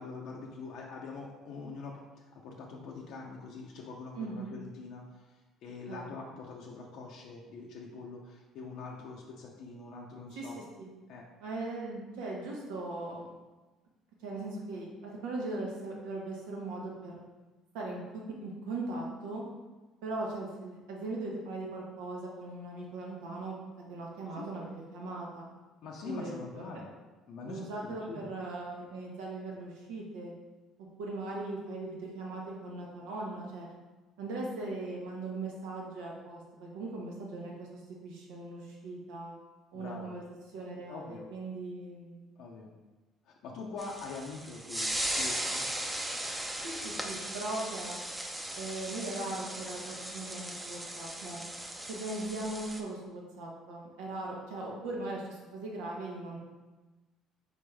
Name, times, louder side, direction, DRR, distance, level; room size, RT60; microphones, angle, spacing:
voice 1, 0.0-10.6 11.1-11.2 24.3-24.5 25.8-26.9 27.3-28.3 39.7-40.2 40.9-41.3 42.4-42.7 43.2-45.6, left 4 dB, 70° left, -1 dB, 0.5 m, -44 dB
voice 2, 4.1-4.5 5.9-6.1 10.3-10.5 10.8-10.9 11.4-13.3 14.2-17.2 17.7-19.4 20.0-23.5 23.9-25.5 26.0-26.6 27.4-30.3 31.0-33.7 34.2-39.3 39.7-40.2 40.5-42.2 46.6-48.0 48.5-51.4 51.9-56.4, right 2 dB, 90° right, -2 dB, 1.0 m, -39 dB
sound 1, 43.8-52.8, right 1 dB, 10° right, 0.6 m, -37 dB
4.1 x 3.5 x 3.3 m, 1.2 s
supercardioid pair, 85°, 0 cm